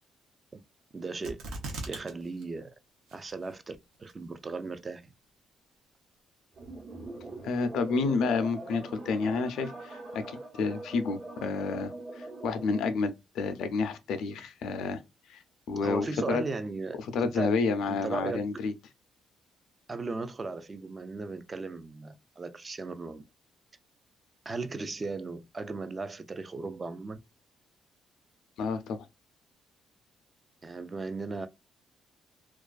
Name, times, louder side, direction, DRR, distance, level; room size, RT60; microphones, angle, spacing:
voice 1, 0.9-1.4 1.9-2.7 3.1-5.0 15.8-17.5 17.9-18.5 19.9-23.2 24.5-27.2 30.6-31.5, right 3 dB, 30° right, 0.3 m, -36 dB
sound 1, 1.2-2.1 2.4-2.5 3.1-3.6 4.1-4.2, right 2 dB, 90° right, 0.6 m, -38 dB
sound 2, 6.5-13.0, right 2 dB, 55° right, 1.0 m, -43 dB
voice 2, 7.4-15.0 15.3-15.4 15.7-16.4 17.1-18.7 28.6-29.1, left 4 dB, 80° left, 0.4 m, -30 dB
2.4 x 2.2 x 2.3 m
cardioid pair, 90°, 0 cm